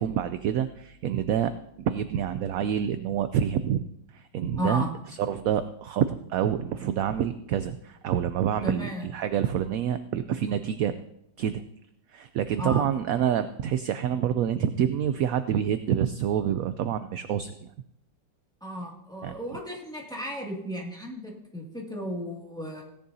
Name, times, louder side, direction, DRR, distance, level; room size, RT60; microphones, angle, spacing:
voice 1, 0.0-1.5 1.8-3.8 4.1-10.9 11.4-11.6 12.1-17.7 19.2-19.4, right 9 dB, 75° right, 11 dB, 0.8 m, -27 dB
voice 2, 4.6-4.9 8.6-9.1 12.6-12.9 18.6-22.8, equal, ahead, -2 dB, 2.0 m, -34 dB
17.0 x 10.5 x 2.7 m, 0.79 s
omnidirectional pair, 1.9 m